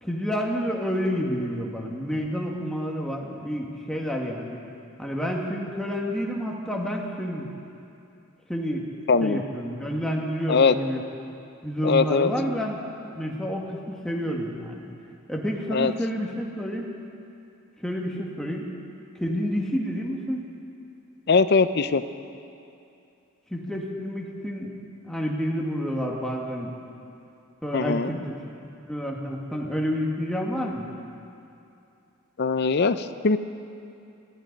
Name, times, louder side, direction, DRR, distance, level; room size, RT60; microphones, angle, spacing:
voice 1, 0.0-4.6 5.0-7.4 8.5-8.9 9.2-11.0 11.6-12.8 13.1-14.9 15.3-16.9 17.8-18.7 19.1-20.4 23.5-24.7 25.1-26.7 27.6-28.2 28.8-30.9, equal, 5° left, -1 dB, 1.6 m, -29 dB
voice 2, 9.1-9.4 10.5-10.7 11.8-12.3 15.7-15.9 21.3-22.0 27.7-28.1 32.4-33.4, left 4 dB, 50° left, 12 dB, 0.5 m, -21 dB
18.0 x 15.0 x 5.3 m, 2.7 s
head